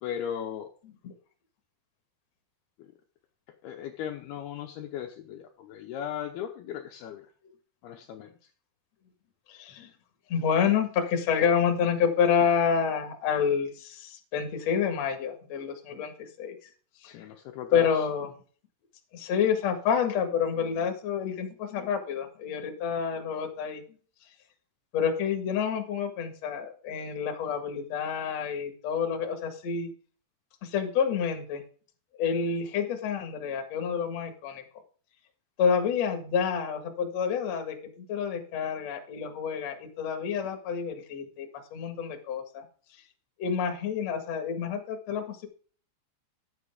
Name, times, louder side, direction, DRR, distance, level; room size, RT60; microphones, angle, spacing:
voice 1, 0.0-0.7 2.8-2.9 3.6-7.3 7.8-8.5 17.1-17.9, left 9 dB, 90° left, 3 dB, 2.2 m, -37 dB
voice 2, 9.5-9.9 10.3-16.6 17.0-17.1 17.7-18.3 19.1-23.8 24.9-29.9 30.6-31.6 32.2-34.6 35.6-42.6 43.4-45.5, left 7 dB, 60° left, 5 dB, 1.8 m, -28 dB
11.0 x 8.3 x 3.6 m, 0.41 s
omnidirectional pair, 5.7 m